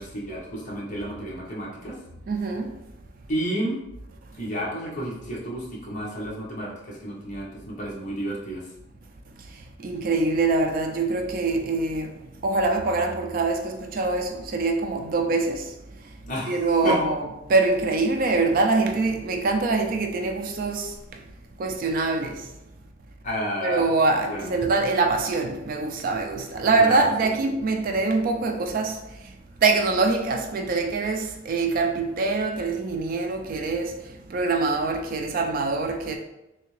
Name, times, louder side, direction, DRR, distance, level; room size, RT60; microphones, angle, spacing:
voice 1, 0.0-2.0 3.3-3.8 4.4-8.6 16.3-17.0 23.2-23.8 24.3-24.5 26.8-27.1, equal, 40° left, 1.0 m, -31 dB
voice 2, 2.3-2.8 9.4-16.1 16.5-17.2 17.5-21.2 21.6-22.5 23.6-29.3 29.6-36.2, right 3 dB, 45° right, 0.3 m, -24 dB
3.4 x 2.8 x 3.1 m
head